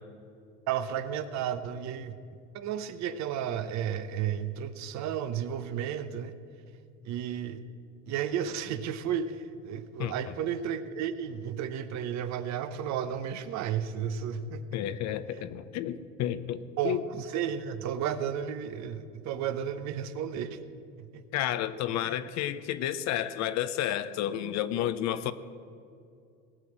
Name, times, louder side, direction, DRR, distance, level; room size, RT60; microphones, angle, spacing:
voice 1, 0.7-2.2 2.5-6.3 7.0-7.6 8.1-14.6 15.1-15.4 16.8-20.6 21.0-21.2 22.0-22.2, right 8 dB, 55° right, 1.0 m, -33 dB
voice 2, 14.7-17.0 21.3-25.3, left 11 dB, 55° left, 0.7 m, -31 dB
18.0 x 6.0 x 8.8 m
supercardioid pair, 105°, 33 cm